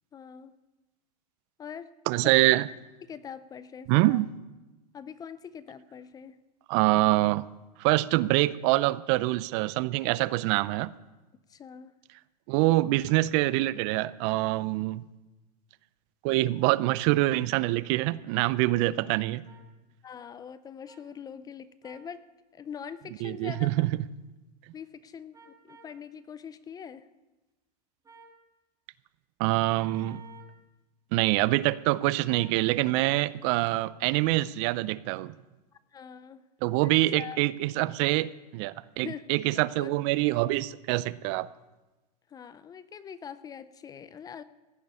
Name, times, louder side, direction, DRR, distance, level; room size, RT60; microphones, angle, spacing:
voice 1, 0.1-0.5 1.6-1.9 2.2-2.3 3.0-4.2 4.9-6.4 11.5-11.9 20.0-22.3 22.5-23.7 24.7-27.1 35.9-36.4 36.8-37.4 39.0-39.2 39.5-39.9 42.3-44.4, left 7 dB, 20° left, 15 dB, 0.5 m, -43 dB
voice 2, 2.1-2.7 3.9-4.3 6.7-7.5 7.8-10.9 12.5-15.0 16.2-19.4 23.2-23.9 29.4-30.2 31.1-35.3 36.6-41.5, right 18 dB, 45° right, 18 dB, 0.5 m, -25 dB
sound 1, 19.4-19.6 20.9-21.0 21.8-22.1 23.4-23.7 25.3-25.9 28.0-28.4 29.7-30.5 32.3-32.6, right 4 dB, 15° right, 1.9 m, -52 dB
16.0 x 6.8 x 9.6 m, 1.1 s
hypercardioid pair, 125°, 21 cm